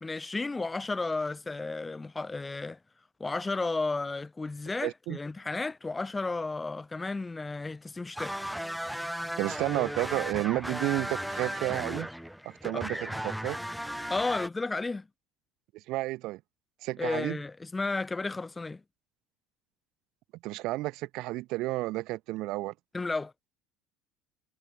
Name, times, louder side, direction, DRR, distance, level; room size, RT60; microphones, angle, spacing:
voice 1, 0.0-2.8 3.2-8.3 12.7-12.8 14.1-15.1 17.0-18.8 22.9-23.3, left 3 dB, 15° left, 2.4 m, -33 dB
voice 2, 4.8-5.2 9.4-12.1 12.5-13.6 15.7-16.4 16.8-17.4 20.4-22.7, right 19 dB, 65° right, 0.5 m, -31 dB
sound 1, 8.2-14.5, equal, ahead, 1.3 m, -36 dB
supercardioid pair, 110°, 0 cm